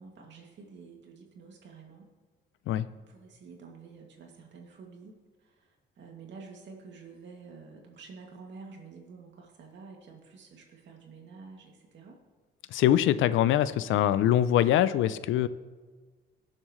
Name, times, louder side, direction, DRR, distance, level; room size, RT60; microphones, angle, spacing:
voice 1, 0.0-2.1 3.1-12.2 13.3-13.8, right 4 dB, 65° right, 1 dB, 2.4 m, -49 dB
voice 2, 12.7-15.5, left 11 dB, 80° left, 16 dB, 0.5 m, -23 dB
18.0 x 7.3 x 3.2 m, 1.4 s
cardioid pair, 90°, 20 cm